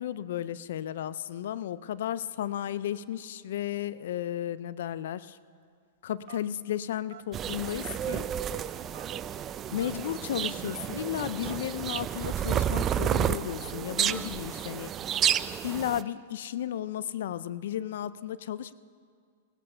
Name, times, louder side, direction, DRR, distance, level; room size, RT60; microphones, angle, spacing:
voice 1, 0.0-5.4 6.0-8.3 9.7-14.9 15.6-18.7, left 11 dB, 70° left, 17 dB, 0.5 m, -34 dB
Telephone, 6.3-6.6 7.1-7.3 8.1-8.5 8.9-9.1 9.8-10.0 10.6-10.8 11.4-11.6 12.2-12.3 13.0-13.3 14.0-14.2, right 13 dB, 65° right, 0.7 m, -48 dB
sound 1, 7.3-16.0, right 9 dB, 25° right, 0.4 m, -31 dB
17.0 x 13.0 x 5.6 m, 2.1 s
hypercardioid pair, 130°, 0 cm